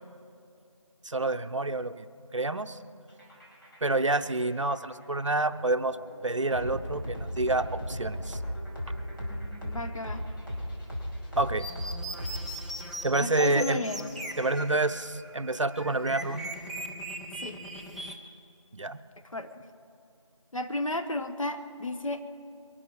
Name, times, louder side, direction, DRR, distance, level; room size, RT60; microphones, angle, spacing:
voice 1, 1.0-2.1 2.3-2.8 3.8-6.0 6.2-8.4 11.4-11.7 13.0-13.8 14.4-16.4 18.7-19.0, right 2 dB, 65° right, 10 dB, 0.7 m, -28 dB
sound 1, 3.1-12.8, equal, 40° left, 5.0 m, -37 dB
voice 2, 9.7-10.3 13.2-14.1 17.4-17.6 19.3-19.6 20.5-22.3, left 1 dB, 75° left, 7 dB, 1.4 m, -33 dB
sound 2, 11.6-18.2, right 1 dB, ahead, 0.4 m, -40 dB
23.0 x 12.5 x 4.7 m, 2.5 s
figure-of-eight pair, 175°, 17 cm